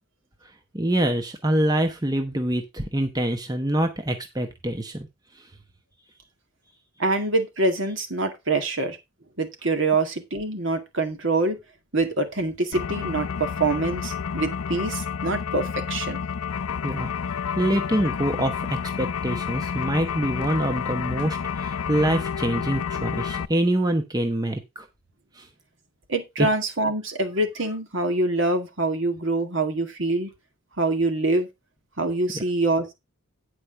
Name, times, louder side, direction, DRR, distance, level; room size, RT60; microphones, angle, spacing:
voice 1, 0.7-5.1 16.8-17.1 17.6-24.9 25.4-25.5 26.4-26.5, right 1 dB, 20° right, 1.0 m, -25 dB
voice 2, 7.0-9.0 9.4-11.6 11.9-16.2 26.1-30.3 30.8-31.5 32.0-32.9, right 2 dB, 60° right, 2.0 m, -25 dB
sound 1, 12.7-23.5, left 7 dB, 85° left, 0.5 m, -30 dB
9.7 x 4.9 x 5.7 m
head